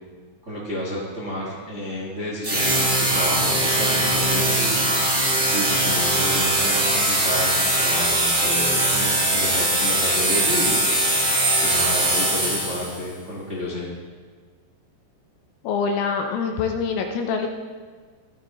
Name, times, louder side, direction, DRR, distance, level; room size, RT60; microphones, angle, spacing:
voice 1, 0.4-4.8 5.5-10.8 11.6-13.9, equal, 65° right, -5 dB, 0.7 m, -31 dB
sound 1, 2.4-13.0, right 1 dB, 25° right, 1.4 m, -21 dB
voice 2, 15.6-17.5, left 5 dB, 75° left, 4 dB, 2.6 m, -25 dB
15.5 x 12.5 x 3.0 m, 1.5 s
omnidirectional pair, 5.1 m